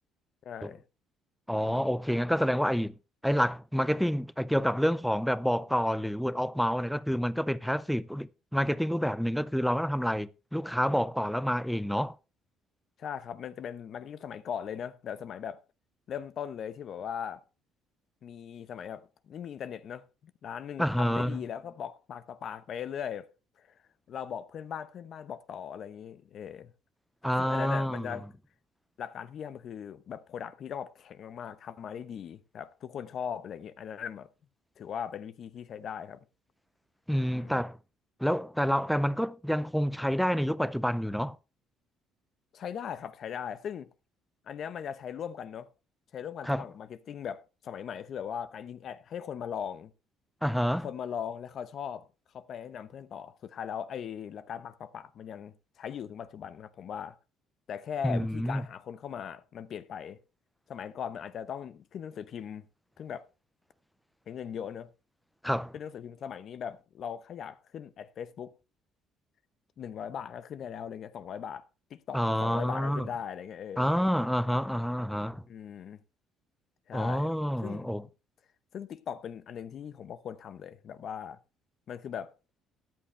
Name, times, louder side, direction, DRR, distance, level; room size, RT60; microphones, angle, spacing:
voice 1, 0.4-0.8 13.0-15.6 16.1-17.4 18.2-23.3 23.6-23.7 24.1-26.7 27.4-28.3 29.0-34.3 34.8-36.2 37.3-37.6 42.5-43.9 44.5-45.7 46.1-49.9 50.8-52.1 52.3-57.2 57.7-60.2 60.7-62.6 63.0-63.3 64.3-64.9 65.7-68.5 69.8-73.9 75.5-76.0 76.9-77.3 77.6-77.9 78.7-81.4 81.9-82.3, left 8 dB, 50° left, 0.9 m, -39 dB
voice 2, 1.5-2.9 3.2-12.2 20.8-21.4 27.2-28.2 37.1-37.8 38.2-41.4 46.4-46.6 50.4-50.9 58.0-58.6 65.4-65.7 72.1-73.1 73.8-75.4 76.9-78.0, equal, ahead, 0.5 m, -28 dB
13.5 x 10.5 x 3.2 m
cardioid pair, 120°, 0 cm